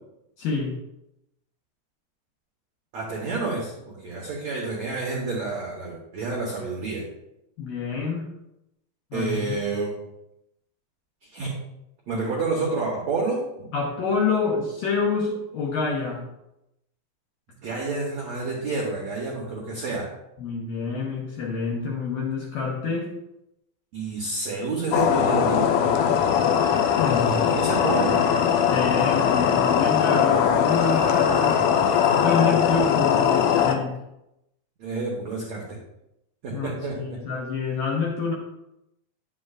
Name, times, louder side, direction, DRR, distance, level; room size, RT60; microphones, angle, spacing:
voice 1, 0.4-0.8 7.6-8.3 9.1-9.6 13.7-16.2 20.4-23.1 27.0-27.5 28.7-31.6 32.1-33.9 36.5-38.3, left 4 dB, 70° left, -2 dB, 2.2 m, -27 dB
voice 2, 2.9-7.0 9.1-9.9 11.3-11.5 12.1-13.7 17.6-20.1 23.9-26.0 27.3-28.2 30.7-32.5 34.8-35.6 36.4-37.2, right 3 dB, 80° right, -3 dB, 1.5 m, -29 dB
sound 1, 24.9-33.8, left 8 dB, 85° left, 2.2 m, -20 dB
10.0 x 7.6 x 2.4 m, 0.85 s
omnidirectional pair, 5.0 m